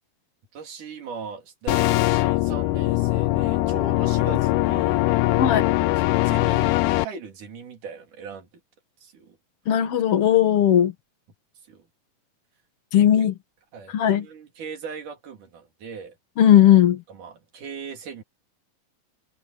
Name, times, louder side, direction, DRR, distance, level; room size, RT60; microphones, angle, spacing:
voice 1, 0.5-5.1 5.9-6.7 7.0-8.5 9.0-9.4 11.7-11.9 13.0-13.1 13.7-16.2 17.1-18.2, right 5 dB, 65° right, 4.6 m, -39 dB
sound 1, 1.7-7.1, left 18 dB, 80° left, 1.9 m, -21 dB
voice 2, 9.7-10.9 12.9-13.4 13.9-14.3 16.4-17.0, left 10 dB, 60° left, 1.7 m, -17 dB
omnidirectional pair, 3.9 m